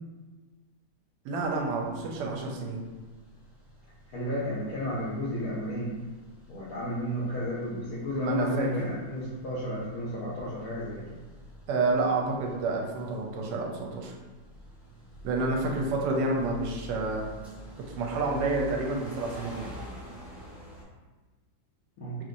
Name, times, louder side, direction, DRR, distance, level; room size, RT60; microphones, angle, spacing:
voice 1, 1.2-2.8 8.1-8.7 11.7-14.1 15.2-17.2 17.8-19.7, right 3 dB, 75° right, 0 dB, 1.1 m, -29 dB
sound 1, 1.5-20.8, equal, ahead, 0.7 m, -48 dB
voice 2, 4.1-6.0 6.5-11.2 15.6-15.8 22.0-22.2, left 1 dB, 65° left, -7 dB, 0.9 m, -33 dB
2.9 x 2.8 x 2.5 m, 1.3 s
omnidirectional pair, 2.0 m